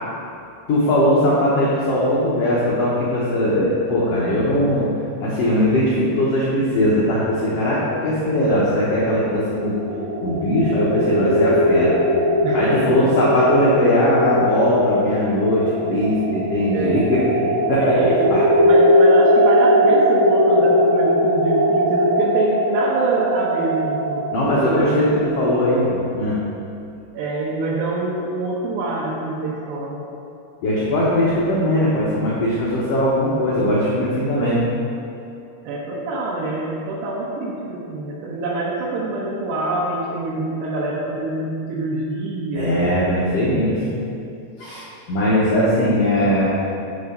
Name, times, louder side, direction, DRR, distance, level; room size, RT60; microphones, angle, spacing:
voice 1, 0.7-4.9 5.2-9.7 10.2-11.9 12.5-17.2 17.7-18.0 18.3-18.4 24.3-26.4 30.6-34.6 42.5-43.8 44.6-44.8 45.1-46.5, left 1 dB, 75° left, -7 dB, 1.4 m, -19 dB
sound 1, 9.2-26.0, equal, 40° right, 2.2 m, -19 dB
voice 2, 12.4-13.0 16.7-17.2 17.8-24.3 24.6-24.9 27.1-30.0 35.6-42.7, right 2 dB, 85° right, -5 dB, 3.2 m, -25 dB
11.5 x 6.4 x 3.8 m, 2.6 s
omnidirectional pair, 4.7 m